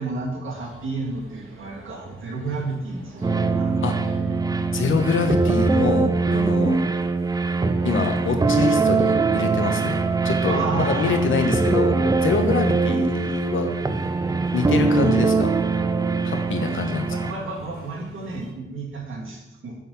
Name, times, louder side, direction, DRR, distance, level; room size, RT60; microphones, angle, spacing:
voice 1, 0.0-4.1 10.4-11.2 17.0-19.8, right 3 dB, 70° right, -3 dB, 2.6 m, -31 dB
sound 1, 0.5-18.5, right 2 dB, 85° right, 1.8 m, -46 dB
sound 2, 3.2-17.3, right 4 dB, 20° right, 0.4 m, -22 dB
voice 2, 4.7-6.8 7.8-13.7 14.5-15.5 16.2-17.2, left 5 dB, 70° left, 5 dB, 1.1 m, -25 dB
9.1 x 4.2 x 5.8 m, 1.0 s
wide cardioid pair, 130°, 21 cm